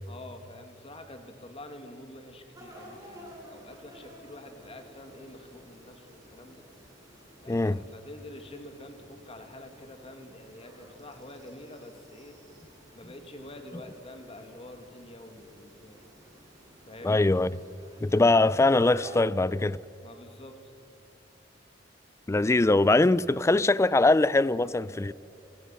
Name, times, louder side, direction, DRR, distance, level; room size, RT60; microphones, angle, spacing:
voice 1, 0.1-6.6 7.4-12.4 12.9-16.0 16.9-17.2 20.0-20.7, left 1 dB, 30° left, 2.3 m, -47 dB
sound 1, 2.5-19.2, equal, 20° right, 5.2 m, -52 dB
voice 2, 7.5-7.8 17.0-17.5 18.0-19.8 22.3-25.1, left 2 dB, 15° left, 0.4 m, -22 dB
29.5 x 16.5 x 5.9 m
head